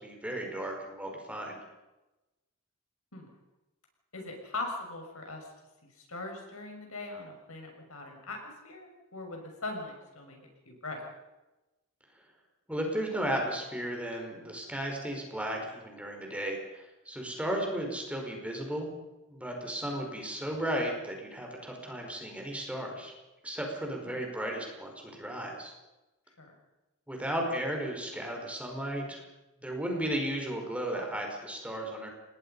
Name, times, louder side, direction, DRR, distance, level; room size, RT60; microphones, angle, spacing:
voice 1, 0.0-1.6 12.7-18.9 19.3-23.1 23.4-25.7 27.1-29.2 29.6-32.1, right 1 dB, 5° right, 1 dB, 4.9 m, -34 dB
voice 2, 4.1-5.5 6.0-10.4 10.6-11.0 24.0-24.2 26.4-26.5, left 2 dB, 75° left, 2 dB, 6.5 m, -40 dB
28.0 x 20.5 x 5.5 m, 1.0 s
head